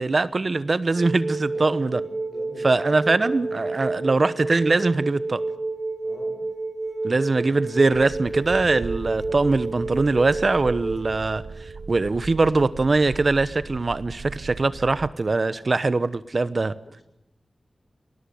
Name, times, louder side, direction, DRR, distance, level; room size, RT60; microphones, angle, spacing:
voice 1, 0.0-2.0 2.6-5.4 7.0-16.7, right 3 dB, 50° right, 15 dB, 1.0 m, -22 dB
sound 1, 1.0-13.4 15.2-15.3, right 3 dB, 30° right, 7.3 m, -31 dB
voice 2, 1.5-3.5 4.0-4.3 6.0-6.4 15.5-15.7 16.8-17.0, left 2 dB, 60° left, 5 dB, 7.4 m, -45 dB
sound 2, 7.9-15.1, right 4 dB, 80° right, 1.3 m, -38 dB
20.5 x 18.5 x 9.5 m, 0.89 s
wide cardioid pair, 70°, 0 cm